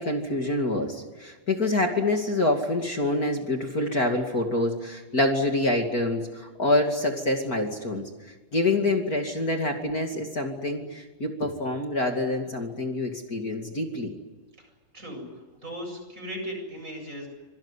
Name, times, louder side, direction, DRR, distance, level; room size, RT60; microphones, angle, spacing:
voice 1, 0.0-8.1 8.5-14.1, left 2 dB, 30° left, 3 dB, 1.7 m, -26 dB
voice 2, 14.6-15.2 15.6-17.3, equal, 15° right, 2 dB, 7.9 m, -37 dB
25.5 x 20.0 x 9.8 m, 1.2 s
omnidirectional pair, 5.4 m